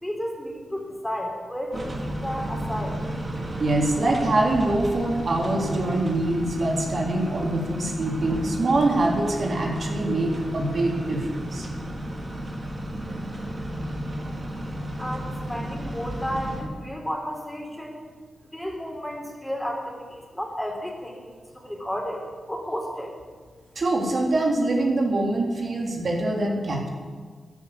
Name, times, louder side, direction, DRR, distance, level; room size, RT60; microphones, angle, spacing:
voice 1, 0.0-3.0 15.0-18.0 18.5-23.1, equal, 10° left, 1 dB, 3.8 m, -32 dB
sound 1, 1.7-16.6, equal, 35° right, 3.6 m, -33 dB
voice 2, 3.6-11.7 23.7-26.9, right 2 dB, 55° right, 0 dB, 3.3 m, -24 dB
13.5 x 11.5 x 8.5 m, 1.5 s
cardioid pair, 85°, 0 cm